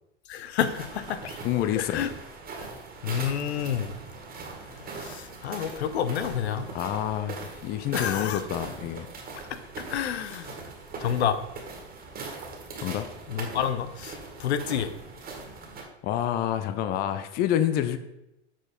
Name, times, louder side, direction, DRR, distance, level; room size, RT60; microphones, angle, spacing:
voice 1, 0.3-1.4 1.7-2.1 3.0-4.0 5.0-6.7 7.9-8.4 9.9-10.6 11.0-11.4 13.3-14.9, left 9 dB, 70° left, 12 dB, 0.8 m, -29 dB
sound 1, 0.6-15.8, right 4 dB, 25° right, 1.9 m, -41 dB
voice 2, 1.4-2.1 6.7-9.1 12.8-13.1 16.0-18.0, left 11 dB, 30° left, 11 dB, 0.5 m, -28 dB
7.4 x 4.5 x 5.1 m, 0.90 s
hypercardioid pair, 105°, 33 cm